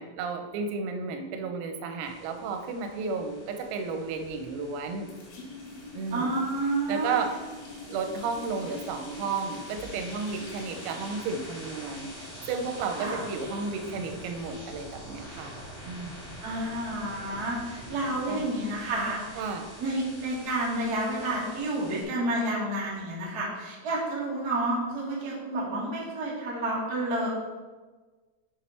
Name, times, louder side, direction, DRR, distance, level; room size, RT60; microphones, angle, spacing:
voice 1, 0.0-5.1 5.9-6.4 6.9-7.4 7.9-15.6 15.8-16.2 18.3-18.5 19.4-19.7, right 4 dB, 85° right, 5 dB, 3.5 m, -33 dB
sound 1, 2.0-22.0, equal, 30° left, 1.3 m, -46 dB
sound 2, 4.2-4.8 5.1-14.5, left 3 dB, 65° left, 3.5 m, -45 dB
voice 2, 6.1-7.2 12.9-13.2 16.4-19.4 19.8-27.3, right 1 dB, 55° right, -6 dB, 1.0 m, -30 dB
7.3 x 6.9 x 4.4 m, 1.3 s
omnidirectional pair, 6.0 m